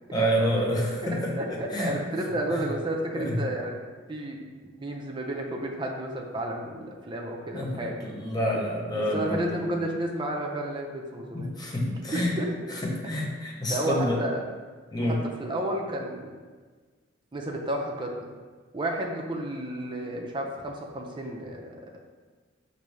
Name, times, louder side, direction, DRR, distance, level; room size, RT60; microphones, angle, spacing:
voice 1, 0.1-1.9 2.5-2.6 3.1-3.4 7.5-9.5 11.3-12.3 12.7-14.2 14.9-15.2, equal, 20° left, -2 dB, 0.6 m, -28 dB
voice 2, 1.3-3.7 4.1-4.4 4.6-8.0 8.9-11.5 12.1-12.5 13.7-14.4 15.1-16.4 17.3-18.2 18.7-21.7, right 1 dB, 25° right, 0 dB, 0.4 m, -32 dB
5.0 x 2.6 x 3.1 m, 1.4 s
head